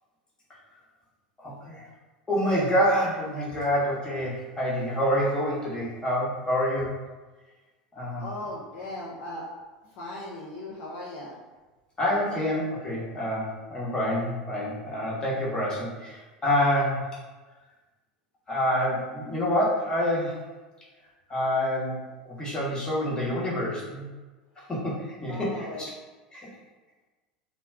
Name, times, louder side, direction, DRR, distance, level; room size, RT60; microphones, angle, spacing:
voice 1, 1.4-1.9 2.3-6.9 7.9-8.3 12.0-17.1 18.5-20.4 21.3-24.1 24.7-25.7 26.3-26.5, equal, 20° left, -6 dB, 1.1 m, -27 dB
voice 2, 8.2-9.5 9.8-11.4 12.1-12.2 25.3-25.9, left 2 dB, 55° left, -5 dB, 0.6 m, -38 dB
2.2 x 2.2 x 3.4 m, 1.2 s
hypercardioid pair, 90°, 4 cm